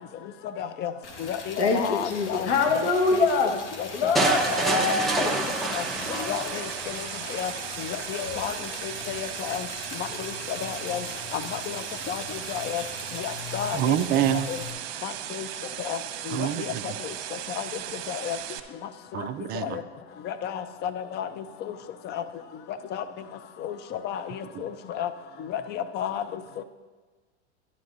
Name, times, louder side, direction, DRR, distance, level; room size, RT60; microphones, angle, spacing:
voice 1, 0.6-0.9 1.2-2.5 3.1-4.1 4.7-5.3 5.7-5.8 6.2-6.7 7.3-7.5 7.8-8.5 8.8-9.7 10.0-11.0 11.3-11.4 11.7-11.8 12.1-12.2 12.5-12.8 13.1-14.0 14.3-14.6 15.0-15.5 15.8-16.0 16.3-16.7 17.6-17.7 18.1-18.4 19.5-19.8 20.3-21.3 22.1-22.2 22.9-23.0 23.6-23.8 24.0-25.1 25.5-26.2, left 9 dB, 30° left, 12 dB, 0.6 m, -32 dB
Liquid, 1.0-14.7, left 4 dB, 90° left, 1.5 m, -40 dB
voice 2, 1.6-3.5 3.9-5.3, left 3 dB, 70° left, 2 dB, 1.4 m, -24 dB
sound 1, 4.1-7.1, right 2 dB, ahead, 0.8 m, -28 dB
sound 2, 4.3-18.6, right 12 dB, 60° right, 1.0 m, -37 dB
voice 3, 13.7-14.5 16.3-17.0 19.1-19.8 24.5-24.7, right 12 dB, 30° right, 10 dB, 0.4 m, -26 dB
11.5 x 11.0 x 2.6 m, 1.3 s
hypercardioid pair, 115°, 34 cm